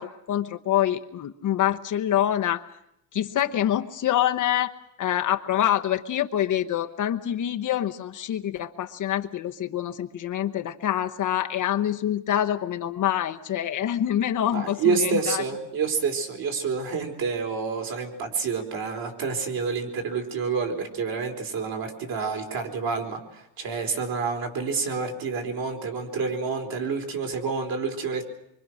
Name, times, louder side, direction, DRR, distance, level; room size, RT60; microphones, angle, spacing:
voice 1, 0.0-2.6 3.1-4.7 5.0-15.4, left 11 dB, 40° left, 6 dB, 1.0 m, -26 dB
voice 2, 14.5-28.2, right 5 dB, 50° right, 5 dB, 4.3 m, -28 dB
25.0 x 24.5 x 6.3 m, 0.80 s
cardioid pair, 130°, 46 cm